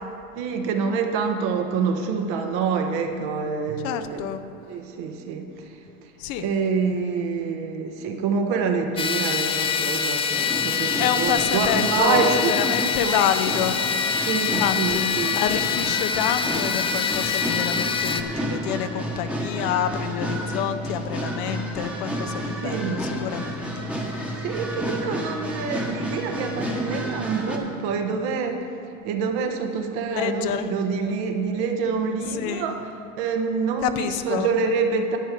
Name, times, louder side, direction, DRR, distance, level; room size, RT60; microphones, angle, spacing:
voice 1, 0.4-4.3 4.7-5.7 6.4-13.5 14.2-15.7 22.6-23.1 24.4-28.7 29.0-32.9 33.2-35.2, right 5 dB, 60° right, 5 dB, 1.4 m, -26 dB
voice 2, 3.8-4.4 6.2-6.5 11.0-14.1 14.6-15.1 15.3-23.9 30.1-30.7 32.3-32.7 33.8-34.5, left 9 dB, 55° left, 9 dB, 0.8 m, -28 dB
sound 1, 9.0-18.2, left 6 dB, 15° left, 0.3 m, -25 dB
sound 2, 10.3-27.6, equal, 5° right, 1.2 m, -31 dB
11.0 x 8.9 x 5.1 m, 2.7 s
supercardioid pair, 115°, 43 cm